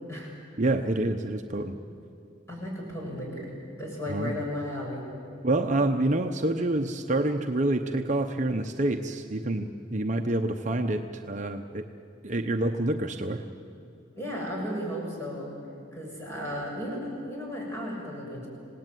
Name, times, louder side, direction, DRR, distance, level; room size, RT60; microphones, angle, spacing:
voice 1, 0.6-1.8 4.1-4.4 5.4-11.8 12.2-13.4, right 2 dB, 40° right, 5 dB, 0.9 m, -27 dB
voice 2, 2.5-5.0 14.2-15.5 15.9-18.5, left 1 dB, 15° left, -3 dB, 7.2 m, -35 dB
27.0 x 18.5 x 9.3 m, 2.5 s
head